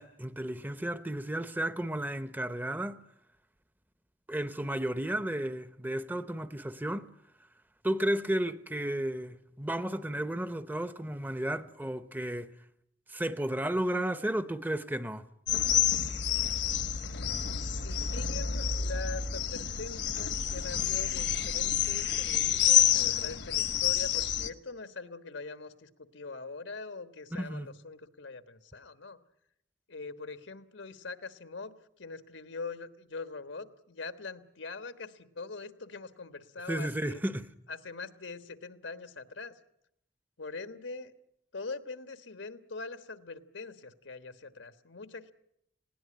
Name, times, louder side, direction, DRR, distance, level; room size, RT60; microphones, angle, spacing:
voice 1, 0.0-3.0 4.3-7.1 7.8-12.5 13.1-15.3 27.3-27.7 36.7-37.5, right 1 dB, 10° right, 0.8 m, -33 dB
sound 1, 15.5-24.5, left 9 dB, 65° left, 1.1 m, -28 dB
voice 2, 17.8-29.2 29.9-31.7 32.0-37.2 37.7-39.5 40.4-41.1 41.5-45.3, left 4 dB, 85° left, 1.3 m, -43 dB
20.0 x 17.5 x 10.0 m
head